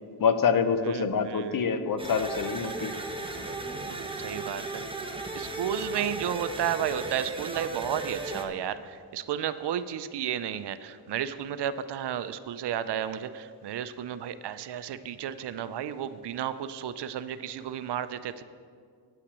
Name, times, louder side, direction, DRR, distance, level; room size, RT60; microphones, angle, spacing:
voice 1, 0.2-2.9, left 6 dB, 50° left, 10 dB, 0.8 m, -26 dB
voice 2, 0.8-1.7 3.9-4.8 5.3-18.4, right 9 dB, 65° right, 13 dB, 0.6 m, -33 dB
sound 1, 2.0-8.4, right 2 dB, 10° right, 1.0 m, -36 dB
9.0 x 5.8 x 8.3 m, 2.1 s
cardioid pair, 85°, 44 cm